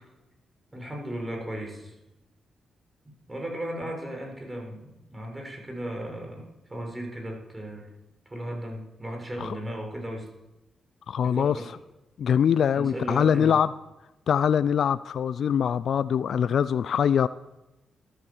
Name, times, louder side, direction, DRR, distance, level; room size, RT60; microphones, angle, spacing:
voice 1, 0.7-2.0 3.0-7.9 8.3-10.3 11.2-11.7 12.6-13.6, right 1 dB, 20° right, 2 dB, 6.5 m, -36 dB
voice 2, 11.1-11.6 12.2-13.7 14.3-17.3, left 8 dB, 70° left, 15 dB, 0.4 m, -23 dB
14.0 x 13.0 x 7.3 m, 0.98 s
supercardioid pair, 55°, 0 cm